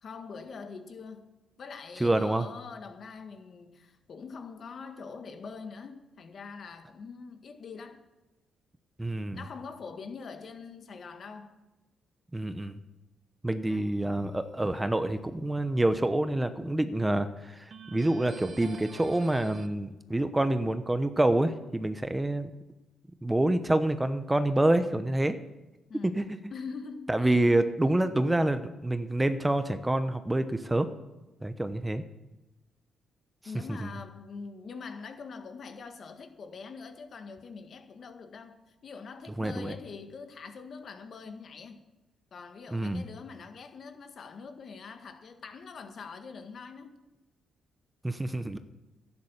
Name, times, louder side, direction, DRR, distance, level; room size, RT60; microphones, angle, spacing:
voice 1, 0.0-1.3 1.6-8.0 9.3-11.5 13.7-13.9 25.9-26.2 26.5-27.5 33.5-41.8 42.3-46.9, left 5 dB, 55° left, 1.7 m, -44 dB
voice 2, 2.0-2.5 9.0-9.4 12.3-12.8 13.4-22.5 23.2-25.4 26.1-26.2 27.1-30.9 31.4-32.0 33.8-33.9 39.4-39.7 42.7-43.0 48.0-48.6, right 1 dB, 15° right, 0.9 m, -27 dB
sound 1, 13.7-14.3 17.7-19.7, right 6 dB, 55° right, 1.1 m, -46 dB
11.5 x 9.7 x 7.3 m
cardioid pair, 80°, 0 cm